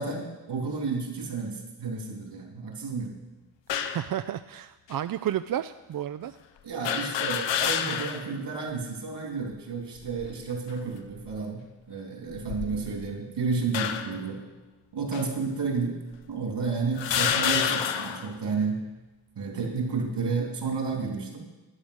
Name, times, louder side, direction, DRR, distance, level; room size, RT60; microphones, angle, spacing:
voice 1, 0.0-3.1 6.6-14.4 14.9-16.0 16.3-18.8 19.4-21.4, right 4 dB, 70° right, 1 dB, 3.2 m, -31 dB
sound 1, 3.7-4.1 4.9-5.0 6.8-8.3 8.7-8.8 10.0-10.4 11.1-11.4 12.3-13.1 13.7-14.2 15.1-15.2 16.1-16.2 17.0-18.3, left 8 dB, 85° left, 0.9 m, -28 dB
voice 2, 3.7-6.4, right 11 dB, 55° right, 11 dB, 0.5 m, -32 dB
11.5 x 9.3 x 6.4 m, 1.2 s
cardioid pair, 85°, 43 cm